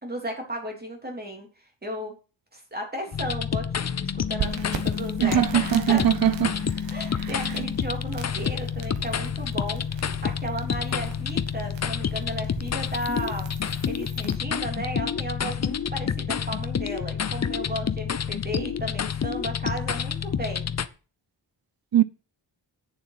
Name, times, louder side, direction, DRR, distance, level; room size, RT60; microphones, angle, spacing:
voice 1, 0.0-2.1 2.5-6.0 6.9-13.5 13.9-20.7, right 1 dB, 20° right, 3.1 m, -35 dB
sound 1, 3.1-20.9, left 7 dB, 40° left, 0.6 m, -29 dB
sound 2, 4.4-14.4, right 8 dB, 80° right, 1.5 m, -40 dB
voice 2, 5.2-6.6 7.2-7.7 21.9-22.0, right 11 dB, 55° right, 0.6 m, -22 dB
8.8 x 7.1 x 5.8 m
wide cardioid pair, 155°, 44 cm